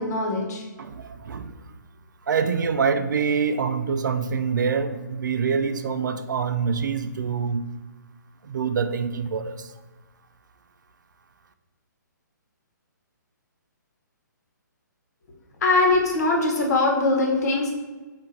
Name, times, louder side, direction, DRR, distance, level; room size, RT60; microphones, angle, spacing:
voice 1, 0.0-0.6 15.6-17.7, left 2 dB, 55° left, 0 dB, 1.1 m, -21 dB
voice 2, 0.8-1.6 2.3-7.7 8.4-9.7, right 6 dB, 70° right, 10 dB, 0.3 m, -25 dB
3.7 x 2.5 x 4.3 m, 1.3 s
hypercardioid pair, 140°, 11 cm